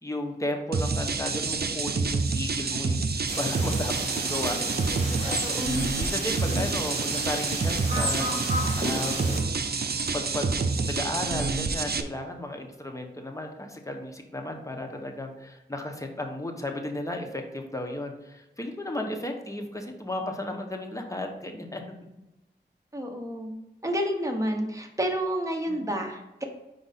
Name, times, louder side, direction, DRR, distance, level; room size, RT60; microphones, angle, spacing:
voice 1, 0.0-8.3 8.6-9.4 10.1-10.5 10.8-21.8 25.7-25.9, left 1 dB, 15° left, 3 dB, 1.0 m, -34 dB
sound 1, 0.7-12.0, right 4 dB, 60° right, 0.5 m, -28 dB
sound 2, 3.2-9.4, equal, 40° right, 1.8 m, -33 dB
voice 2, 5.2-5.9 22.9-23.5 23.8-26.4, equal, 15° right, 2 dB, 1.0 m, -30 dB
5.2 x 4.7 x 4.1 m, 0.98 s
wide cardioid pair, 50°, 19 cm